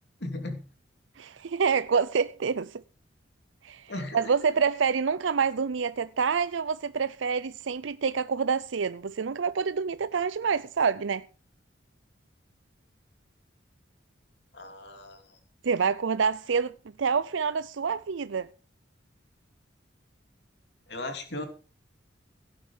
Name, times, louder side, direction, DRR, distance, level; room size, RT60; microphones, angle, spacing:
voice 1, 0.2-0.6 3.9-4.3 14.5-15.4 20.9-21.5, left 2 dB, 65° left, 3.1 m, -36 dB
voice 2, 1.2-2.8 3.6-11.2 15.6-16.7 17.0-18.5, right 6 dB, 85° right, 0.5 m, -27 dB
17.0 x 9.0 x 4.9 m
head